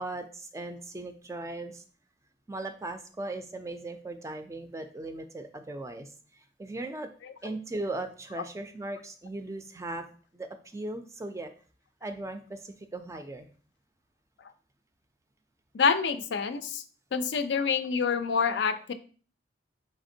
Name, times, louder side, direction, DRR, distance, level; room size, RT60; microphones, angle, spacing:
voice 1, 0.0-1.8 2.5-7.1 7.4-10.0 10.3-11.5 12.0-13.5, right 2 dB, 15° right, 7 dB, 0.3 m, -38 dB
voice 2, 15.7-16.8 17.1-18.9, left 5 dB, 80° left, 10 dB, 0.4 m, -27 dB
5.0 x 3.4 x 2.7 m, 0.42 s
head